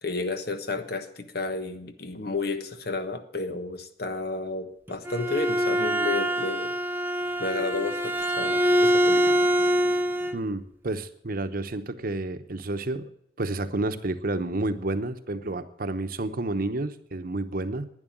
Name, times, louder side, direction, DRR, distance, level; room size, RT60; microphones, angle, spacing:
voice 1, 0.0-6.7 7.4-9.5, left 3 dB, 60° left, 9 dB, 1.3 m, -32 dB
Bowed string instrument, 4.9-10.4, equal, 10° right, 0.7 m, -24 dB
voice 2, 10.3-13.1 13.4-17.9, right 2 dB, 55° right, 10 dB, 0.9 m, -30 dB
11.0 x 9.9 x 9.1 m, 0.70 s
head